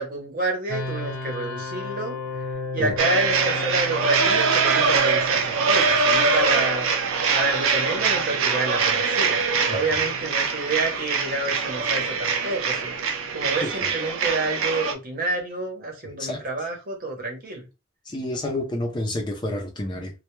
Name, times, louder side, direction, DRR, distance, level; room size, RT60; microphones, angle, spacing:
voice 1, 0.0-2.2 2.7-6.9 7.3-13.0 13.3-17.6, right 2 dB, 45° right, 0.8 m, -28 dB
sound 1, 0.7-13.5, left 2 dB, 75° left, 0.9 m, -37 dB
sound 2, 3.0-14.9, right 5 dB, 80° right, 0.4 m, -23 dB
voice 2, 16.0-16.4 18.1-20.1, left 1 dB, 20° left, 0.5 m, -29 dB
2.2 x 2.1 x 3.0 m
head